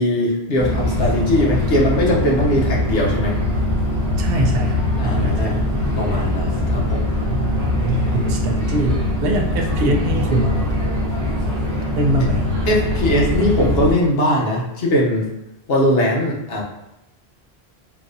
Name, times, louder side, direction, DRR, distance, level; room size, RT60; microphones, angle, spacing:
voice 1, 0.0-3.3 4.9-5.7 6.0-7.0 12.7-15.3 15.7-16.6, left 1 dB, 65° left, -3 dB, 1.0 m, -20 dB
sound 1, 0.6-13.9, left 1 dB, 20° right, 0.9 m, -22 dB
voice 2, 4.2-5.6 7.3-10.8 12.0-12.5, right 2 dB, 65° right, 1 dB, 0.7 m, -23 dB
3.9 x 2.5 x 2.6 m, 0.90 s
omnidirectional pair, 1.1 m